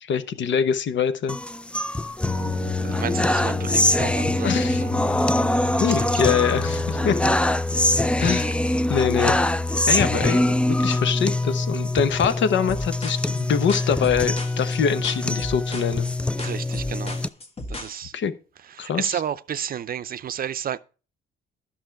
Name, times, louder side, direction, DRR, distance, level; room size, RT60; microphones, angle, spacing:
voice 1, 0.0-1.4 4.4-4.8 5.8-7.2 8.2-8.5 8.9-9.4 9.9-16.1 18.1-18.3 18.8-19.2, left 7 dB, 70° left, 1.0 m, -24 dB
sound 1, 1.3-17.3, left 1 dB, 5° left, 0.4 m, -23 dB
sound 2, 2.2-7.4, left 6 dB, 50° left, 1.5 m, -36 dB
voice 2, 2.6-4.5 4.8-4.9 5.9-6.2 10.2-10.4 16.4-17.2 17.7-18.1 18.7-20.8, right 9 dB, 45° right, 0.6 m, -32 dB
sound 3, 12.7-18.0, left 2 dB, 30° left, 1.6 m, -36 dB
11.5 x 6.2 x 4.6 m
cardioid pair, 90°, 20 cm